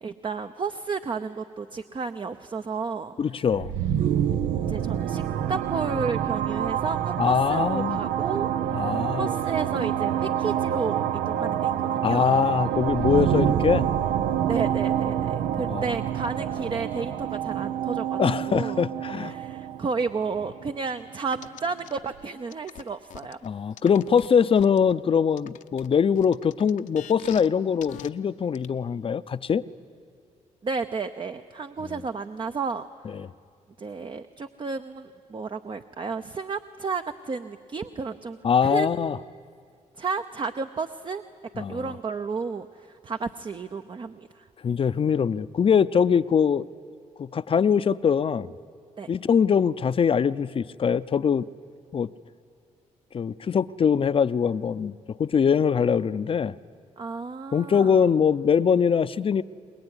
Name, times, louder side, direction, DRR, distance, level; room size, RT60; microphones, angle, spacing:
voice 1, 0.0-3.2 4.5-12.3 14.5-18.9 19.1-23.4 30.6-32.9 33.8-38.4 38.6-39.4 40.0-41.2 41.6-44.5 49.0-49.1 57.0-58.1, right 4 dB, 40° right, 8 dB, 0.8 m, -32 dB
voice 2, 3.2-3.7 7.2-8.0 8.7-9.3 12.0-13.9 15.7-15.9 18.2-19.3 23.4-29.6 33.1-33.3 38.4-39.2 41.6-41.9 44.6-46.6 47.2-48.5 49.1-51.4 51.9-52.1 53.1-54.9 55.2-56.5 57.5-59.4, left 7 dB, 45° left, 15 dB, 0.6 m, -22 dB
sound 1, 3.5-21.1, right 10 dB, 85° right, 0.7 m, -27 dB
sound 2, 21.3-21.9 22.5-24.9 25.4-27.5 27.8-28.1 28.5-28.7, left 10 dB, 70° left, 0.8 m, -43 dB
23.5 x 20.5 x 9.8 m, 2.2 s
cardioid pair, 70°, 13 cm